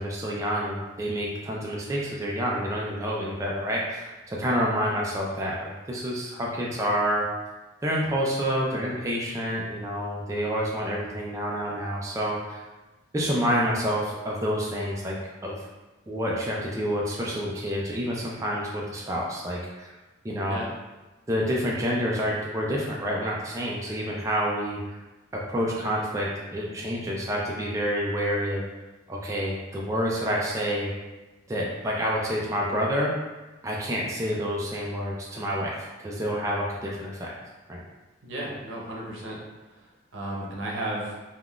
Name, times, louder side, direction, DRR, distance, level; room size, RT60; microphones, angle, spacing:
voice 1, 0.0-7.3 7.8-12.6 13.1-15.1 15.4-15.7 16.1-19.9 20.2-20.6 21.3-25.0 25.3-28.6 29.1-30.9 31.5-33.1 33.6-37.3 37.7-37.8, equal, 15° right, -3 dB, 0.3 m, -28 dB
voice 2, 38.2-39.4 40.1-41.1, right 1 dB, 80° right, -3 dB, 0.7 m, -33 dB
3.5 x 2.3 x 2.3 m, 1.1 s
head